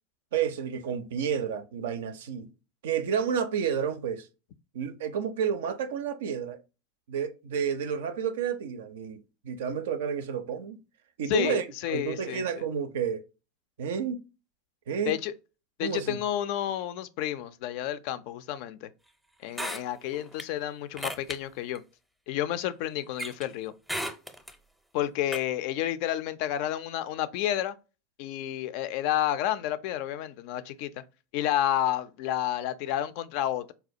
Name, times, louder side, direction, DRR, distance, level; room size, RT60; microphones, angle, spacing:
voice 1, 0.3-2.5 2.8-4.3 4.7-6.6 7.1-9.2 9.4-10.8 11.2-13.2 13.8-14.2 14.9-15.1 15.8-16.2, right 7 dB, 70° right, 0.4 m, -30 dB
voice 2, 11.3-12.6 15.1-15.3 15.8-18.9 19.4-21.8 22.3-23.7 24.9-27.8 28.2-31.0 31.3-33.7, left 12 dB, 55° left, 0.3 m, -30 dB
sound 1, 19.5-20.4 21.0-21.4 21.8-21.9 23.2-23.5 23.9-24.5 25.3-25.4, equal, ahead, 0.5 m, -34 dB
4.1 x 2.2 x 2.6 m
hypercardioid pair, 85°, 0 cm